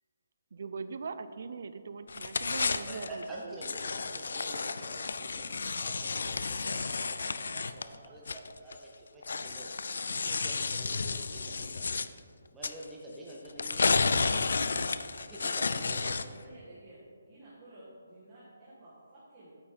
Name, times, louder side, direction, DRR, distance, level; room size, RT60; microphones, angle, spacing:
voice 1, 0.5-3.6 7.7-7.8 8.1-8.2, right 5 dB, 50° right, 11 dB, 0.4 m, -41 dB
sound 1, 2.1-3.2 3.6-8.7 9.2-12.1 12.6-12.8 13.5-16.4, left 4 dB, 65° left, 0.3 m, -32 dB
voice 2, 2.9-9.7 10.1-11.9 12.5-16.2, right 1 dB, 5° right, -5 dB, 0.6 m, -47 dB
voice 3, 16.2-19.5, right 1 dB, 20° right, -11 dB, 1.5 m, -53 dB
8.7 x 5.6 x 4.3 m, 2.1 s
hypercardioid pair, 170°, 0 cm